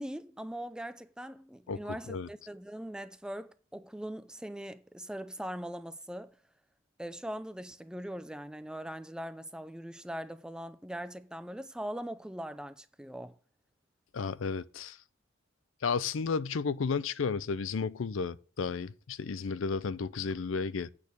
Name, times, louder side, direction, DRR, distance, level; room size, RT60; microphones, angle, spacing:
voice 1, 0.0-6.3 7.0-13.3, equal, 5° right, 0.4 m, -41 dB
voice 2, 1.7-2.3 14.1-15.0 15.8-20.9, left 5 dB, 75° left, 0.5 m, -33 dB
8.5 x 6.6 x 5.2 m
head